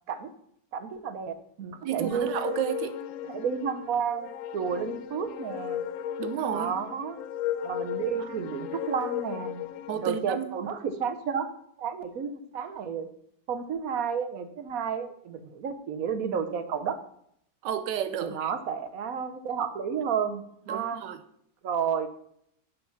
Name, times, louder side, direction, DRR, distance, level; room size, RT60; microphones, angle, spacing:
voice 1, 0.7-2.3 3.2-4.3 4.5-5.8 6.5-7.2 7.6-9.6 9.9-11.5 11.8-13.1 13.5-17.0 18.2-20.4 20.7-21.0 21.6-22.1, right 7 dB, 60° right, 1.1 m, -31 dB
voice 2, 1.8-3.0 6.2-6.7 8.3-8.4 9.9-10.5 17.6-18.5 20.7-21.2, right 10 dB, 85° right, 1.3 m, -31 dB
sound 1, 2.0-10.2, left 10 dB, 75° left, 0.7 m, -36 dB
8.3 x 6.9 x 5.8 m
omnidirectional pair, 1.9 m